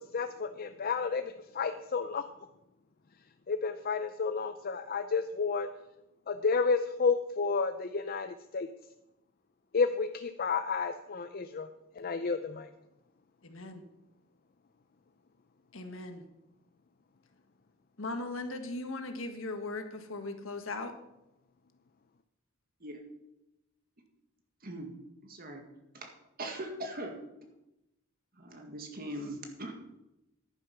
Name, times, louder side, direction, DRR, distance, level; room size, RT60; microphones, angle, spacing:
voice 1, 0.1-1.2 1.5-2.2 3.5-5.7 6.3-8.7 9.7-11.7 12.0-12.7, left 5 dB, 45° left, 9 dB, 0.5 m, -31 dB
voice 2, 13.4-13.8 15.7-16.2 18.0-20.9, left 2 dB, 70° left, 6 dB, 1.6 m, -38 dB
voice 3, 24.6-24.9 25.2-25.6 25.9-26.1 26.4-27.1 28.4-29.8, right 1 dB, 45° right, 4 dB, 1.8 m, -40 dB
11.0 x 9.5 x 5.9 m, 0.90 s
head